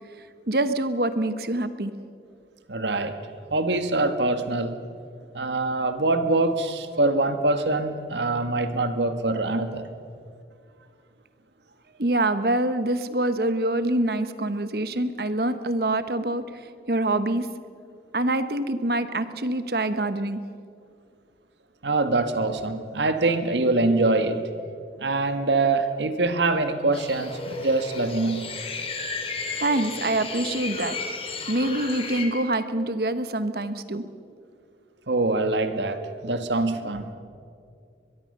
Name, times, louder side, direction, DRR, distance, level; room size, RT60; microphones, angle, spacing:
voice 1, 0.5-1.9 12.0-16.4 16.9-17.5 18.1-20.4 29.6-31.0 31.5-34.0, right 1 dB, 60° right, 11 dB, 1.1 m, -25 dB
voice 2, 2.7-3.1 3.5-4.8 5.3-9.8 21.8-24.4 25.0-28.4 35.1-37.1, right 2 dB, 80° right, 8 dB, 1.7 m, -24 dB
sound 1, 26.9-32.2, left 4 dB, 30° left, 2.6 m, -33 dB
22.5 x 22.0 x 6.7 m, 2.4 s
head